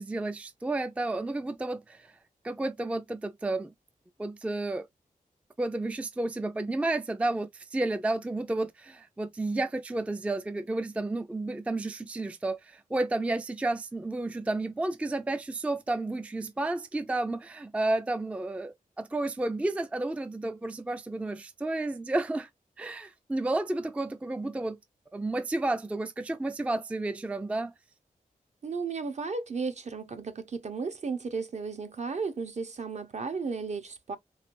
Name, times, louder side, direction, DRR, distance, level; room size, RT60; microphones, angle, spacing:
voice 1, 0.0-2.2 2.4-3.7 4.2-4.9 5.6-22.5 22.8-24.8 25.1-27.7, right 2 dB, 10° right, 0.3 m, -31 dB
voice 2, 28.6-34.2, right 4 dB, 50° right, 0.8 m, -34 dB
3.7 x 3.2 x 2.5 m
wide cardioid pair, 140°, 15 cm